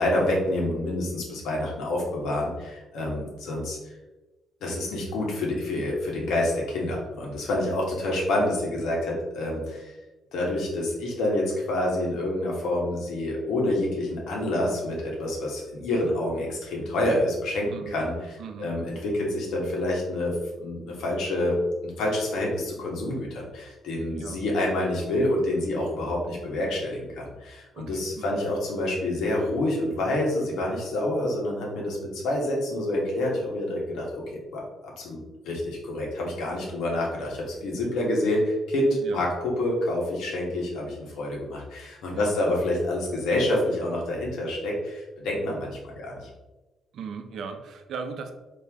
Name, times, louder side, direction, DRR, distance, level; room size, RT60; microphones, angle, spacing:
voice 1, 0.0-3.8 4.6-9.9 10.3-34.6 35.0-39.3 39.6-46.3, left 1 dB, 80° left, -2 dB, 1.3 m, -27 dB
voice 2, 18.4-18.7 24.1-24.4 27.7-28.4 39.0-39.3 42.1-42.4 46.9-48.3, right 5 dB, 70° right, 6 dB, 0.5 m, -38 dB
4.5 x 3.0 x 3.5 m, 1.1 s
cardioid pair, 90°, 0 cm